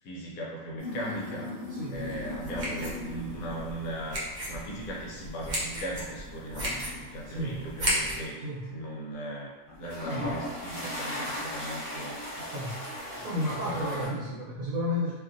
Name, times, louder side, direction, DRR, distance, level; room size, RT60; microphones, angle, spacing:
voice 1, 0.0-1.5 1.9-8.4 8.7-12.8 13.0-13.3 13.6-14.4, right 1 dB, 70° left, -3 dB, 1.0 m, -38 dB
sound 1, 0.8-3.9 4.4-4.7 6.2-7.9 8.3-8.7 9.7-14.1, left 1 dB, 35° left, 1.3 m, -38 dB
voice 2, 1.7-2.1 7.3-7.7 8.4-8.6 10.1-10.3 12.5-12.7 13.2-15.1, left 1 dB, 65° right, -8 dB, 1.1 m, -32 dB
sound 2, 1.9-8.3, equal, 50° right, 0.5 m, -35 dB
2.7 x 2.4 x 2.5 m, 1.3 s
omnidirectional pair, 1.6 m